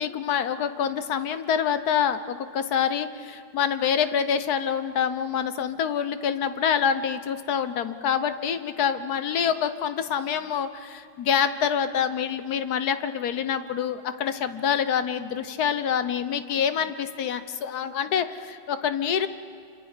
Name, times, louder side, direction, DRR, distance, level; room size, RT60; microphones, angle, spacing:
voice 1, 0.0-19.3, left 8 dB, 60° left, 11 dB, 1.3 m, -26 dB
28.0 x 25.0 x 5.1 m, 2.4 s
omnidirectional pair, 2.1 m